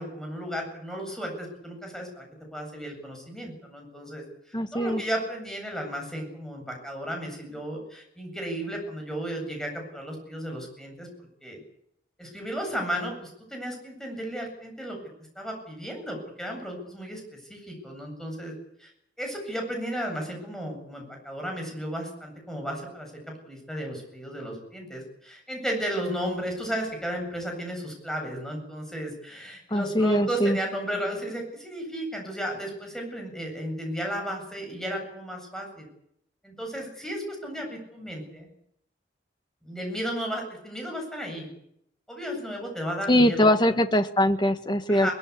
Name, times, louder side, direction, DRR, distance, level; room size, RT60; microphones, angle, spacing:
voice 1, 0.0-2.2 2.5-11.1 11.4-11.6 12.2-15.0 15.3-18.5 18.8-18.9 19.2-23.1 23.4-35.9 36.4-38.5 39.6-41.5 42.1-43.7 44.9-45.1, equal, 5° left, 2 dB, 8.0 m, -34 dB
voice 2, 4.5-5.0 29.7-30.6 43.1-45.1, left 1 dB, 25° left, 8 dB, 1.6 m, -22 dB
22.5 x 20.5 x 8.4 m, 0.75 s
head